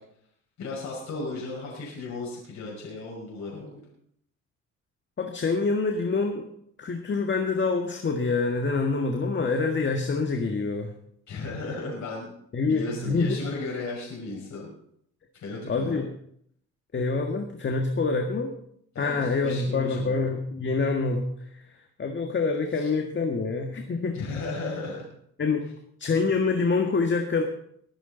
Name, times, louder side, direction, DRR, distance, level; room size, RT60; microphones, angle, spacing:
voice 1, 0.6-3.8 11.3-12.3 12.6-14.7 15.4-16.0 18.9-20.2 22.7-22.9 24.1-25.1, left 3 dB, 70° left, -3 dB, 5.9 m, -35 dB
voice 2, 5.2-6.5 6.8-10.9 12.5-13.4 15.7-16.1 16.9-18.5 19.0-21.6 22.0-24.2 25.4-25.7 26.0-27.4, left 4 dB, 40° left, 3 dB, 1.8 m, -26 dB
22.0 x 10.0 x 4.0 m, 0.69 s
cardioid pair, 90°, 30 cm